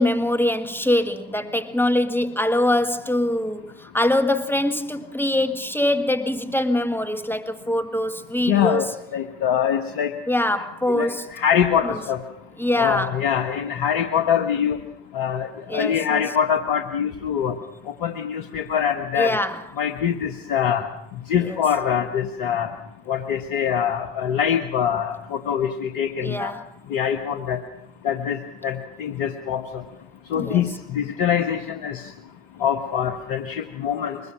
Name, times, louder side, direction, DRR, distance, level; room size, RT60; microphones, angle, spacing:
voice 1, 0.0-8.8 10.3-11.3 11.8-12.0 12.6-13.2 15.7-16.2 19.1-19.6 21.4-21.6 26.2-26.6 30.3-30.7, left 1 dB, 5° left, 1.8 m, -23 dB
voice 2, 8.5-8.9 9.1-10.1 10.9-12.2 12.8-14.8 15.1-15.5 15.7-17.5 18.0-19.4 19.8-20.8 21.3-22.7 23.1-26.5 26.9-27.6 28.0-29.7 30.3-32.0 32.6-34.2, left 8 dB, 75° left, 1.5 m, -23 dB
23.0 x 20.5 x 6.3 m
hypercardioid pair, 60°, 32 cm